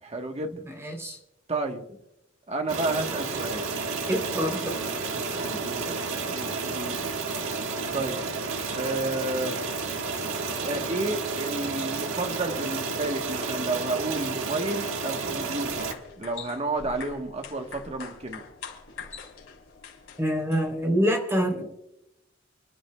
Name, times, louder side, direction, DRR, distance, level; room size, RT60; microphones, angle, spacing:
voice 1, 0.0-0.5 1.5-1.8 2.5-3.7 5.1-7.0 7.9-8.2 8.7-9.7 10.6-15.8 16.2-18.4, right 2 dB, 30° right, 4 dB, 1.2 m, -31 dB
voice 2, 0.5-1.2 4.1-4.8 20.2-21.6, equal, 15° right, 2 dB, 3.3 m, -26 dB
sound 1, 2.7-15.9, right 4 dB, 85° right, 1.6 m, -31 dB
sound 2, 15.5-20.9, left 5 dB, 85° left, 3.6 m, -44 dB
29.5 x 11.5 x 2.3 m, 0.87 s
head